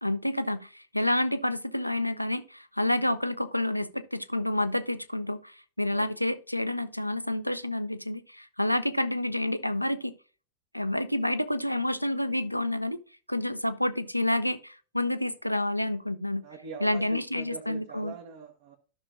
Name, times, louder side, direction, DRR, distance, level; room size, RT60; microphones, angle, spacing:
voice 1, 0.0-10.1 10.7-13.0 13.3-16.4 16.8-18.1, left 1 dB, 90° left, 0.5 m, -29 dB
voice 2, 16.4-18.7, right 6 dB, 55° right, 1.2 m, -42 dB
13.0 x 6.0 x 2.5 m
figure-of-eight pair, 90°, 0 cm